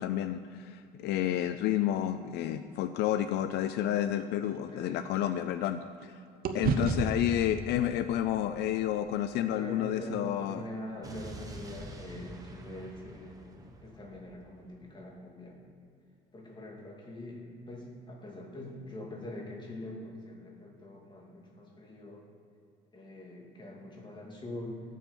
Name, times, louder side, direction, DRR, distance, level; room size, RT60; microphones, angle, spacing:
voice 1, 0.0-6.2 6.5-10.7, left 11 dB, 80° left, 10 dB, 0.5 m, -30 dB
sound 1, 3.7-6.1 6.4-10.7, right 5 dB, 60° right, 0.9 m, -36 dB
voice 2, 4.7-5.0 9.5-15.6 16.3-22.2 22.9-24.8, left 1 dB, 25° left, -1 dB, 2.6 m, -44 dB
Explosion, 11.0-15.1, right 2 dB, 20° right, 1.3 m, -47 dB
14.0 x 7.5 x 5.3 m, 2.5 s
cardioid pair, 110°, 17 cm